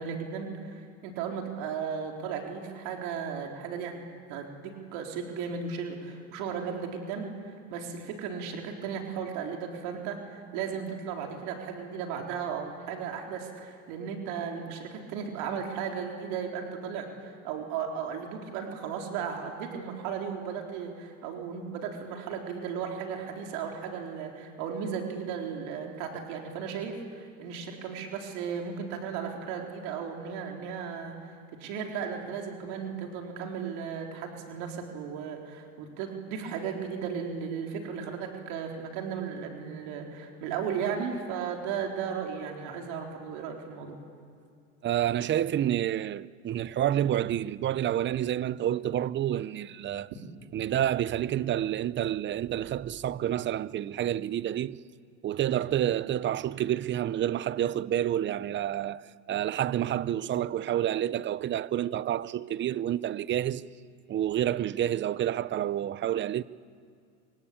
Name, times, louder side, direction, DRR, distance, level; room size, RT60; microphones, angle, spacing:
voice 1, 0.0-3.9 4.3-31.3 31.6-44.0, right 6 dB, 70° right, 4.2 m, -35 dB
voice 2, 44.8-50.1 50.5-54.8 55.2-63.6 64.1-66.4, right 11 dB, 30° right, 0.7 m, -29 dB
26.0 x 24.5 x 8.7 m
supercardioid pair, 105°, 37 cm